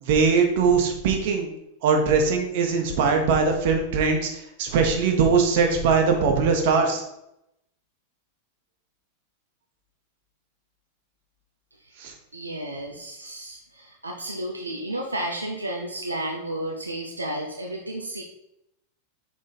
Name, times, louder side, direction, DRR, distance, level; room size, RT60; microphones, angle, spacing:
voice 1, 0.0-1.5 1.8-4.3 4.6-7.0 12.0-12.1, right 5 dB, 50° right, 3 dB, 1.4 m, -21 dB
voice 2, 12.3-18.2, right 1 dB, 80° right, 0 dB, 0.7 m, -32 dB
6.5 x 4.9 x 4.1 m, 0.83 s
figure-of-eight pair, 90°, 0 cm